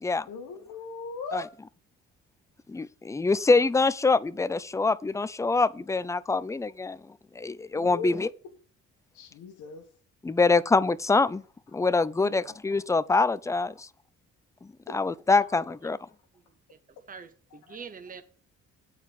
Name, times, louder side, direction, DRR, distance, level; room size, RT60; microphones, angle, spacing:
voice 1, 0.3-1.5 7.7-8.3 9.1-9.9 12.2-12.5 14.9-15.0 17.7-17.8, left 4 dB, 85° left, 1.4 m, -39 dB
voice 2, 2.7-8.3 10.2-11.4 11.7-13.9 14.9-16.0, left 3 dB, 10° left, 0.4 m, -25 dB
voice 3, 16.5-16.8 17.1-18.2, right 5 dB, 30° right, 1.0 m, -45 dB
8.8 x 4.7 x 7.5 m
cardioid pair, 90°, 30 cm